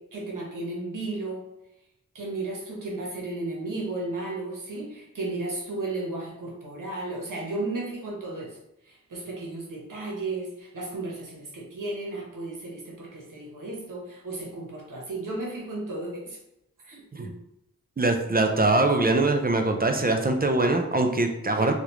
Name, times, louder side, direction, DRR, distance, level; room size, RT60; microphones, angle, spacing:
voice 1, 0.0-1.4 2.1-8.6 8.8-16.4 16.8-17.4 21.5-21.7, right 2 dB, 85° right, -3 dB, 1.0 m, -34 dB
voice 2, 18.0-21.7, right 2 dB, 30° right, 4 dB, 0.4 m, -23 dB
3.2 x 2.4 x 2.9 m, 0.87 s
wide cardioid pair, 60°, 31 cm